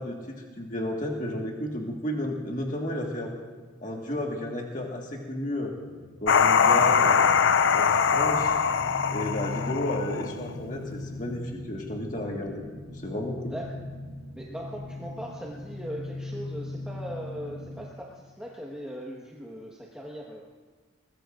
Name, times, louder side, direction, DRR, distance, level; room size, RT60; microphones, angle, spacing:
voice 1, 0.0-3.3 3.8-5.7 6.2-7.3 7.7-8.5 9.1-12.6 13.0-13.5, left 1 dB, 40° left, 0 dB, 1.7 m, -32 dB
sound 1, 5.8-17.9, left 2 dB, 70° right, 1.8 m, -40 dB
sound 2, 6.3-10.5, left 6 dB, 65° left, 0.5 m, -22 dB
voice 2, 14.3-20.4, equal, 5° right, -4 dB, 1.4 m, -39 dB
22.5 x 21.5 x 2.6 m, 1.4 s
head